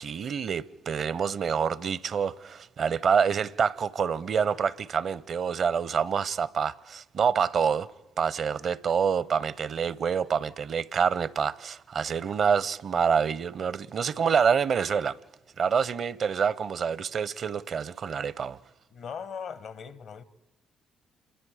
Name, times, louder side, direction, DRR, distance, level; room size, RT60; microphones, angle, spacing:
voice 1, 0.0-7.9 8.2-15.2 15.6-18.6, right 6 dB, 60° right, 0.6 m, -27 dB
voice 2, 18.9-20.2, left 6 dB, 65° left, 1.0 m, -39 dB
28.0 x 23.0 x 4.9 m
hypercardioid pair, 50°, 0 cm